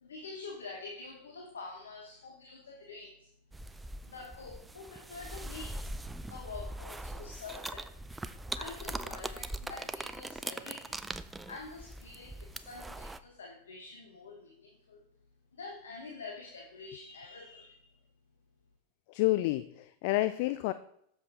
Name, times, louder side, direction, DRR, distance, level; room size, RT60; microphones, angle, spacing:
voice 1, 0.0-3.3 3.6-5.9 6.2-8.2 8.6-11.0 11.5-15.0 15.5-17.9, left 4 dB, 70° left, 1 dB, 1.2 m, -47 dB
sound 1, 3.5-13.2, right 2 dB, 10° right, 0.5 m, -41 dB
voice 2, 19.1-20.7, left 18 dB, 50° left, 13 dB, 0.3 m, -29 dB
7.4 x 7.0 x 4.1 m, 0.73 s
figure-of-eight pair, 90°, 0 cm